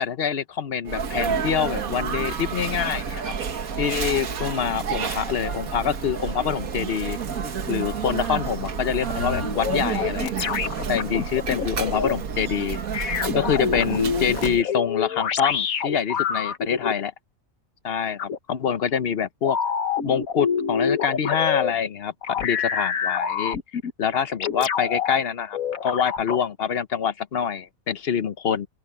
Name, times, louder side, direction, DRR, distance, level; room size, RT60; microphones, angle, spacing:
voice 1, 0.0-3.3 3.8-7.2 7.7-10.5 10.9-17.1 17.8-19.6 20.0-23.6 24.0-28.7, left 7 dB, 50° left, 1.0 m, -26 dB
Sneeze, 0.9-14.6, right 6 dB, 90° right, 1.9 m, -30 dB
sound 1, 9.2-12.1 12.9-16.9 18.2-18.4 19.4-21.7 22.2-23.9 24.4-25.2 25.5-26.4, left 7 dB, 80° left, 1.6 m, -27 dB
open air
omnidirectional pair, 1.5 m